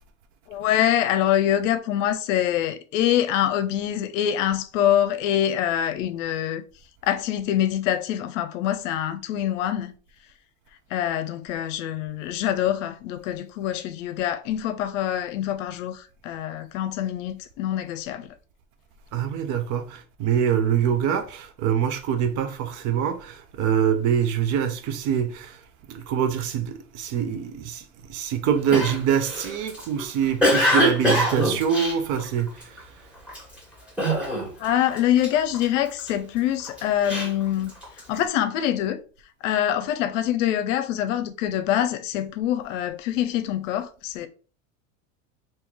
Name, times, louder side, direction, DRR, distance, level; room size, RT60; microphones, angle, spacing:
voice 1, 0.5-6.6 7.0-9.9 10.9-18.3 34.6-37.7 38.1-39.0 39.4-44.3, left 11 dB, 65° left, 0.7 m, -25 dB
voice 2, 19.1-25.6 25.9-27.8 28.1-32.6, right 8 dB, 45° right, 0.7 m, -24 dB
Cough, 28.7-32.8 33.3-33.6 34.0-34.7 34.9-36.1 36.6-38.1, equal, 5° right, 1.7 m, -24 dB
3.0 x 2.9 x 3.6 m
hypercardioid pair, 100°, 40 cm